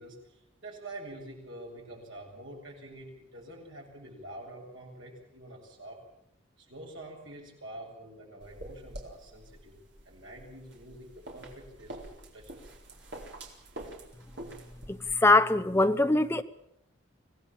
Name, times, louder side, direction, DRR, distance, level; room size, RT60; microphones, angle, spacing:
voice 1, 0.0-6.0 6.6-9.8 10.0-12.8, right 1 dB, 80° right, 8.0 m, -46 dB
sound 1, 8.4-15.1, right 1 dB, 60° right, 4.3 m, -46 dB
voice 2, 14.9-16.4, left 2 dB, 10° left, 0.9 m, -23 dB
24.5 x 17.5 x 7.5 m
head